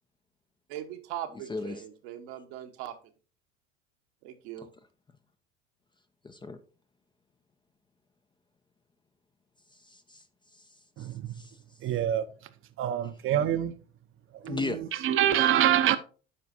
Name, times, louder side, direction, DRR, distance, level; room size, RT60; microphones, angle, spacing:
voice 1, 0.7-2.9 4.2-4.7, right 11 dB, 65° right, 1.2 m, -40 dB
voice 2, 1.5-1.8 6.2-6.6 9.8-10.2 10.5-10.6 11.0-11.6 14.5-14.8, left 3 dB, 15° left, 0.6 m, -36 dB
voice 3, 11.0-11.3 11.8-12.3 12.8-13.7 14.4-16.0, right 11 dB, 35° right, 0.8 m, -25 dB
12.5 x 5.0 x 2.7 m
hypercardioid pair, 75°, 35 cm